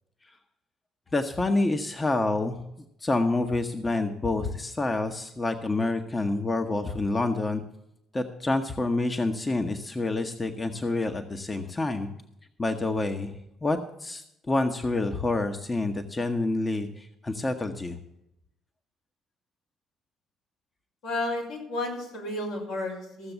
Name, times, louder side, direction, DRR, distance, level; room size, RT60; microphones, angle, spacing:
voice 1, 1.1-2.6 3.0-7.6 8.1-12.1 12.6-18.0, left 2 dB, 25° left, 6 dB, 1.1 m, -28 dB
voice 2, 21.0-23.3, left 2 dB, 75° left, -3 dB, 4.5 m, -32 dB
15.0 x 7.0 x 6.9 m, 0.80 s
hypercardioid pair, 55°, 0 cm